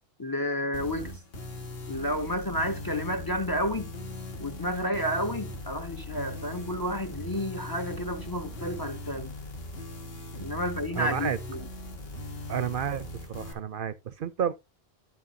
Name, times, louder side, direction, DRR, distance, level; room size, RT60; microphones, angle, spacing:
voice 1, 0.2-1.2 1.9-3.9 4.4-9.3 10.4-11.6, equal, 25° left, 0.7 m, -31 dB
sound 1, 0.7-13.5, left 1 dB, 70° left, 1.7 m, -40 dB
voice 2, 11.0-11.4 12.5-14.5, right 8 dB, 60° right, 0.7 m, -31 dB
10.0 x 7.6 x 2.7 m
omnidirectional pair, 1.1 m